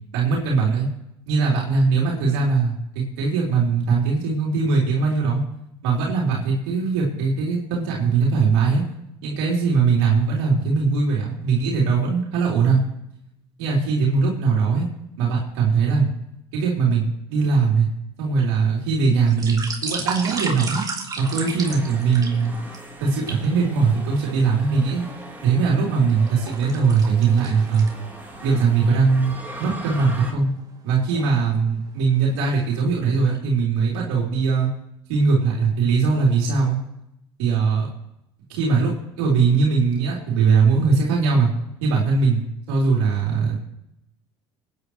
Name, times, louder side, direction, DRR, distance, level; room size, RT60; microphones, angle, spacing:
voice 1, 0.1-0.9 1.3-2.7 3.2-5.4 5.8-8.8 9.2-12.8 13.6-14.9 15.2-16.1 16.5-17.9 18.2-20.8 21.2-22.5 23.0-25.0 25.4-27.9 28.4-29.3 29.6-30.5 30.8-34.7 35.1-36.8 37.4-37.9 38.5-41.5 41.8-43.6, right 5 dB, 85° right, -3 dB, 3.6 m, -20 dB
sound 1, 19.3-22.8 23.3-23.4 24.2-25.0 25.5-28.3 28.7-28.8 29.2-29.3 29.8-30.0 30.9-31.3 31.9-32.1 32.4-33.0 33.3-33.4, right 4 dB, 30° right, 3.3 m, -33 dB
sound 2, 21.2-30.3, right 1 dB, 15° right, 3.8 m, -40 dB
24.0 x 10.0 x 3.2 m, 0.82 s
supercardioid pair, 85°, 13 cm